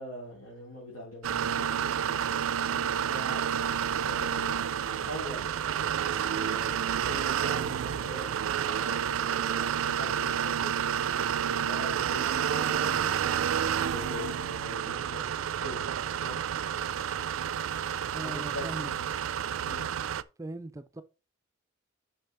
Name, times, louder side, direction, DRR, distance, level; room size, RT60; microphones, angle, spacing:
voice 1, 0.0-2.2 2.7-3.4 4.0-5.5 6.1-10.9 11.5-13.5 13.9-15.2 15.6-15.9 16.2-16.4 18.2-19.1 19.6-19.9, left 1 dB, 90° left, 3.7 m, -43 dB
sound 1, 1.2-20.2, right 9 dB, 85° right, 0.4 m, -30 dB
voice 2, 18.1-18.9 20.4-21.0, right 1 dB, 15° right, 0.4 m, -40 dB
7.0 x 5.8 x 4.1 m
head